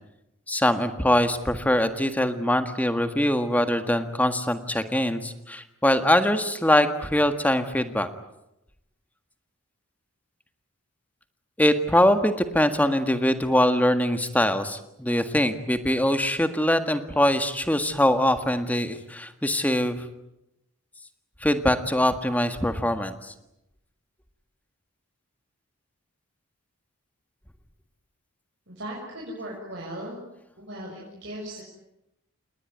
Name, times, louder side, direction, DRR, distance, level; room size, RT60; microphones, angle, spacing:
voice 1, 0.5-8.1 11.6-20.0 21.4-23.3, left 1 dB, 5° left, 8 dB, 1.6 m, -23 dB
voice 2, 28.7-30.2 30.6-31.6, right 1 dB, 55° right, -3 dB, 6.6 m, -37 dB
28.5 x 20.0 x 9.5 m, 0.87 s
head